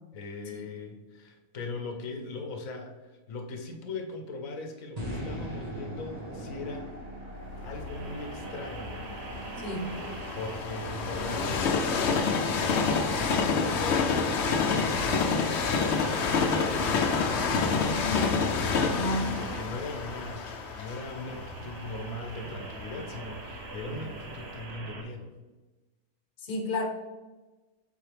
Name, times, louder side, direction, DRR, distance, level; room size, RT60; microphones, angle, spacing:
voice 1, 0.1-6.9 7.6-9.1 10.3-18.1 18.8-25.3, left 2 dB, 85° left, 4 dB, 1.3 m, -40 dB
sound 1, 5.0-21.1, equal, 30° right, 1.3 m, -43 dB
Train, 7.8-23.8 24.4-24.5, left 5 dB, 60° left, 0.9 m, -28 dB
sound 2, 7.9-25.0, right 3 dB, 55° right, 1.1 m, -43 dB
voice 2, 9.6-9.9 18.9-19.3 26.4-26.8, left 1 dB, 40° left, 2 dB, 1.1 m, -31 dB
7.5 x 4.8 x 3.4 m, 1.2 s
omnidirectional pair, 1.4 m